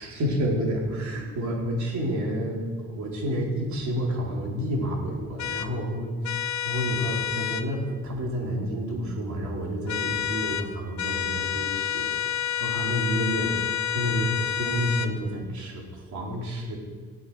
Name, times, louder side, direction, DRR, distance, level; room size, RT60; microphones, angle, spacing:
voice 1, 0.0-12.1 12.6-13.5 13.9-16.8, equal, 70° right, -2 dB, 4.2 m, -29 dB
sound 1, 5.4-5.7 6.2-7.7 9.9-10.7 11.0-15.1, left 9 dB, 65° left, 0.9 m, -29 dB
15.5 x 8.4 x 6.5 m, 1.4 s
cardioid pair, 90°, 30 cm